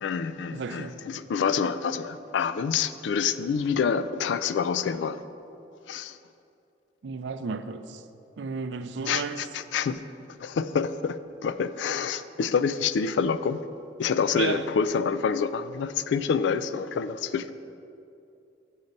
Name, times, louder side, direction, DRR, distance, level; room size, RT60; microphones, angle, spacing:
voice 1, 0.0-5.2 5.9-6.2 9.1-10.0 10.4-11.2 11.4-13.6 14.0-17.5, left 6 dB, 75° left, 14 dB, 0.3 m, -27 dB
voice 2, 0.5-1.0 7.0-8.0 8.4-9.4 14.3-14.7, right 4 dB, 70° right, 11 dB, 0.4 m, -33 dB
7.1 x 5.2 x 6.5 m, 2.7 s
head